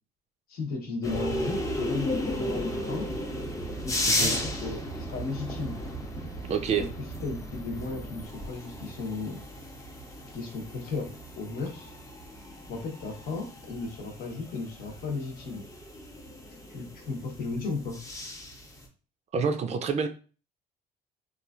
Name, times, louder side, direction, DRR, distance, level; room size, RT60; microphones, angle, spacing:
voice 1, 0.5-3.1 3.8-5.8 6.7-6.9 7.2-9.4 10.3-11.9 12.7-15.6 16.7-18.0, left 3 dB, 60° left, 1 dB, 1.0 m, -35 dB
sound 1, 1.0-18.9, left 1 dB, 20° left, 0.7 m, -35 dB
voice 2, 4.1-4.4 6.5-6.9 19.3-20.1, right 6 dB, 40° right, 7 dB, 0.4 m, -27 dB
3.0 x 2.4 x 2.4 m, 0.36 s
cardioid pair, 110°, 17 cm